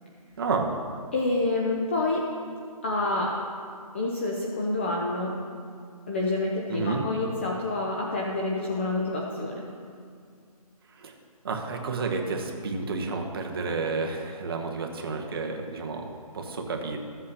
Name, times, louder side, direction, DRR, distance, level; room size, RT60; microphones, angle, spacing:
voice 1, 0.4-0.7 6.7-7.1 11.0-11.1 11.4-16.1 16.3-17.0, right 4 dB, 40° right, 2 dB, 1.0 m, -30 dB
voice 2, 1.1-2.2 2.8-3.4 3.9-5.3 6.1-9.6, left 2 dB, 20° left, -2 dB, 0.5 m, -28 dB
14.5 x 7.6 x 2.8 m, 2.3 s
hypercardioid pair, 165°, 20 cm